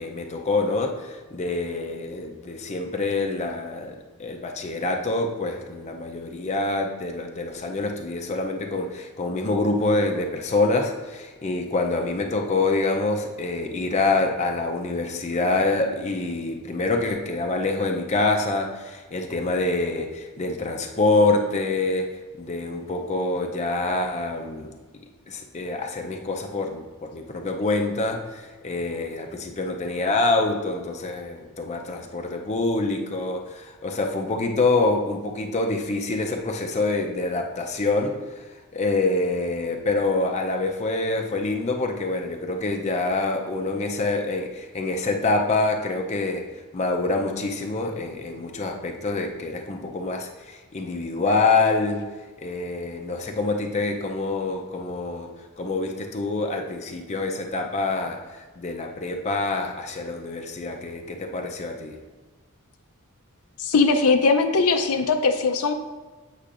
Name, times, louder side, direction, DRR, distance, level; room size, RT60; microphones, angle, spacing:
voice 1, 0.0-24.7 25.3-38.4 38.7-46.5 46.7-52.0 52.4-55.3 55.6-62.0, left 3 dB, 30° left, 2 dB, 0.5 m, -26 dB
voice 2, 63.6-65.7, left 4 dB, 80° left, 6 dB, 0.5 m, -20 dB
8.3 x 5.6 x 2.5 m, 1.3 s
head